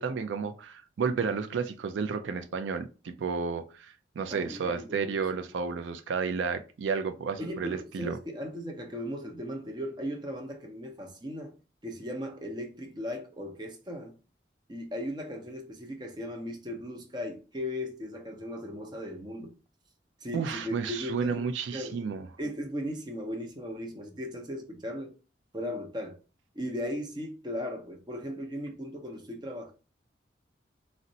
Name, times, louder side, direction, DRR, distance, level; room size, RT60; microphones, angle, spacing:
voice 1, 0.0-8.2 20.3-22.3, right 5 dB, 90° right, 0.4 m, -32 dB
voice 2, 4.3-5.2 7.4-11.5 11.8-14.2 14.7-19.5 20.2-22.0 22.4-25.1 25.5-26.2 26.6-29.7, equal, 25° right, 0.6 m, -37 dB
3.8 x 2.1 x 2.6 m
head